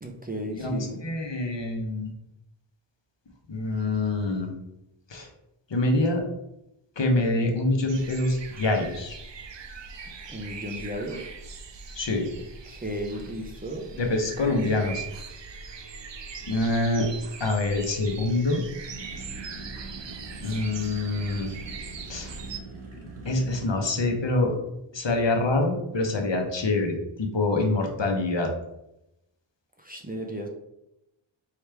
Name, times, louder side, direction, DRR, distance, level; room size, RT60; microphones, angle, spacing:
voice 1, 0.0-1.0 10.3-11.3 12.7-14.0 14.5-14.8 29.8-30.5, equal, 20° right, 1 dB, 0.6 m, -35 dB
voice 2, 0.5-2.1 3.5-4.5 5.1-5.3 5.7-6.2 7.0-9.2 11.9-12.3 14.0-15.0 16.5-17.1 17.4-18.6 20.4-21.5 22.1-22.3 23.2-24.5 24.9-28.5, left 2 dB, 60° left, 2 dB, 1.0 m, -25 dB
sound 1, 7.9-22.6, right 5 dB, 60° right, 0.6 m, -41 dB
sound 2, 18.9-24.1, right 2 dB, 75° right, 1.1 m, -42 dB
4.8 x 3.0 x 3.3 m, 0.85 s
wide cardioid pair, 75°, 50 cm